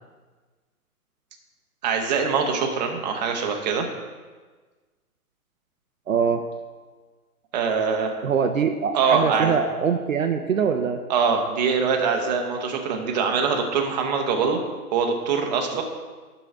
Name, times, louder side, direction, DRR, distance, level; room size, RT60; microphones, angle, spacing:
voice 1, 1.8-3.9 7.5-8.2 8.9-9.5 11.1-14.6 14.9-15.8, right 5 dB, 30° right, 3 dB, 0.9 m, -23 dB
voice 2, 6.1-6.4 8.2-11.0 15.7-15.8, right 6 dB, 60° right, 6 dB, 0.8 m, -23 dB
10.5 x 4.0 x 5.9 m, 1.4 s
figure-of-eight pair, 125°, 46 cm